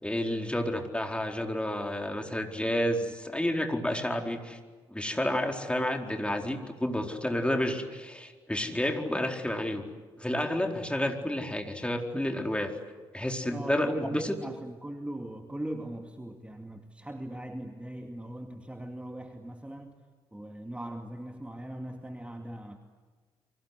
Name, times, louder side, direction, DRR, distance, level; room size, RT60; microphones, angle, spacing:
voice 1, 0.0-4.6 4.9-9.8 10.2-12.7 13.1-14.4, left 1 dB, 10° left, 4 dB, 4.4 m, -30 dB
voice 2, 13.5-20.0 20.3-22.8, right 1 dB, 10° right, 5 dB, 2.4 m, -40 dB
30.0 x 24.5 x 8.1 m, 1.4 s
hypercardioid pair, 45°, 13 cm